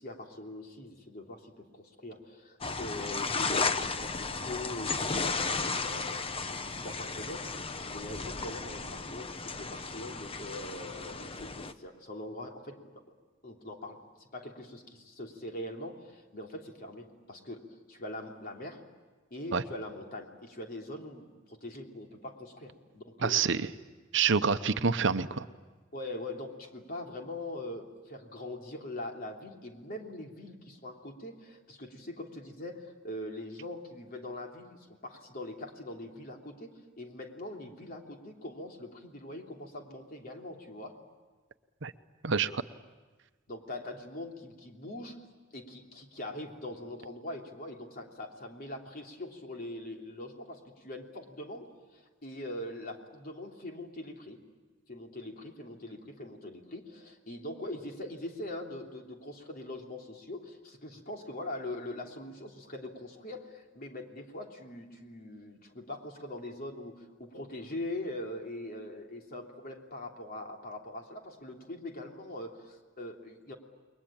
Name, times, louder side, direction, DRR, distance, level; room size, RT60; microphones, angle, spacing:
voice 1, 0.0-6.2 6.5-13.0 13.4-18.8 19.3-23.4 25.9-40.9 43.5-45.2 45.5-54.4 54.9-73.5, left 1 dB, 50° left, 1 dB, 3.2 m, -42 dB
sound 1, 2.6-11.7, left 4 dB, 30° left, 0.9 m, -34 dB
voice 2, 23.2-23.7 24.1-25.5 41.8-41.9 42.2-42.6, right 5 dB, 65° right, 11 dB, 0.9 m, -27 dB
29.0 x 22.0 x 8.8 m, 1.3 s
head